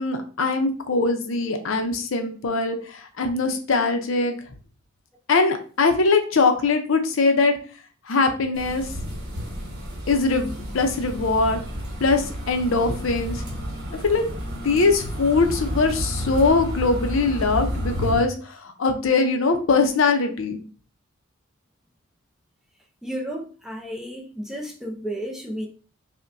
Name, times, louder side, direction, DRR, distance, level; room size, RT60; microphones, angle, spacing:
voice 1, 0.0-4.3 5.3-7.5 8.1-8.8 10.1-11.6 12.0-13.4 14.0-14.2 14.5-20.6, left 3 dB, 65° left, 0.6 m, -22 dB
sound 1, 8.5-18.2, equal, 50° right, 1.0 m, -31 dB
voice 2, 23.0-25.7, equal, ahead, 0.5 m, -32 dB
5.2 x 2.1 x 2.5 m
head